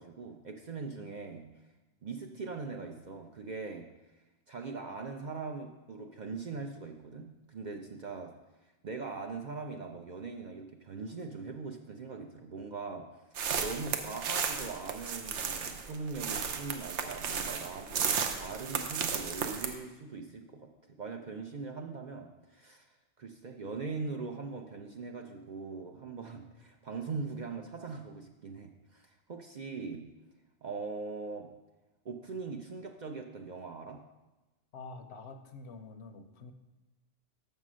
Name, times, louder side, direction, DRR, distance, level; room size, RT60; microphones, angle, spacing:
voice 1, 0.0-1.5 2.0-3.9 4.5-8.3 8.8-13.1 13.6-17.9 18.2-22.9 23.2-30.0 30.6-31.5 32.0-34.0, right 4 dB, 50° right, 3 dB, 0.6 m, -41 dB
sound 1, 13.3-19.7, right 6 dB, 75° right, 1.0 m, -34 dB
voice 2, 34.7-36.5, left 3 dB, 70° left, 8 dB, 0.9 m, -47 dB
6.6 x 5.6 x 6.1 m, 1.1 s
omnidirectional pair, 1.2 m